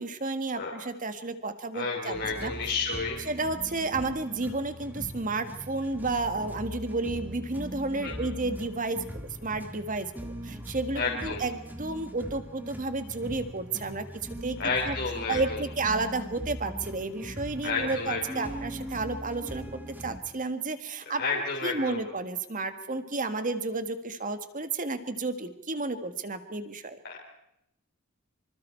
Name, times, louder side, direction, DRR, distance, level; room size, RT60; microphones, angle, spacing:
voice 1, 0.0-2.5 3.3-14.1 14.4-14.6 14.8-15.0 15.3-27.0, right 3 dB, 40° right, 10 dB, 1.6 m, -32 dB
voice 2, 1.7-3.2 8.0-8.3 10.9-11.4 14.6-15.6 17.6-18.5 21.1-22.0 27.0-27.2, left 4 dB, 55° left, -3 dB, 3.3 m, -31 dB
sound 1, 2.1-20.2, equal, 10° right, 1.7 m, -41 dB
25.5 x 25.5 x 4.5 m, 0.80 s
head